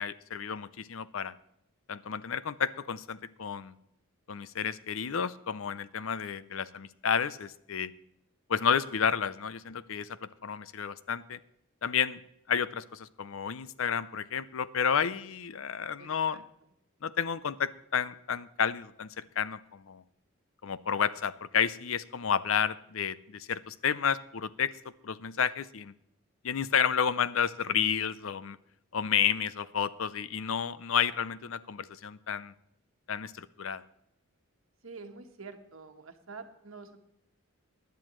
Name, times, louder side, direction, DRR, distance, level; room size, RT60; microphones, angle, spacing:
voice 1, 0.0-1.3 1.9-3.7 4.3-7.9 8.5-11.4 11.8-12.2 12.5-16.4 17.0-20.0 20.6-24.7 25.0-25.9 26.4-28.6 28.9-32.5 33.1-33.8, left 7 dB, 65° left, 16 dB, 0.5 m, -31 dB
voice 2, 16.0-16.4 34.8-37.0, right 4 dB, 65° right, 6 dB, 1.4 m, -47 dB
16.5 x 10.5 x 3.1 m, 0.80 s
head